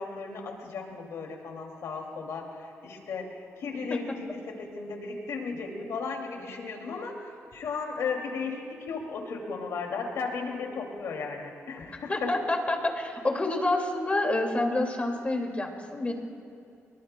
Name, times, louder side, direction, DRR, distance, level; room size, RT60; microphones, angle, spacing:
voice 1, 0.0-12.3, left 4 dB, 80° left, 2 dB, 2.4 m, -35 dB
voice 2, 12.1-16.1, left 2 dB, 25° left, 3 dB, 2.1 m, -28 dB
23.5 x 22.0 x 2.2 m, 2.6 s
cardioid pair, 90°, 5 cm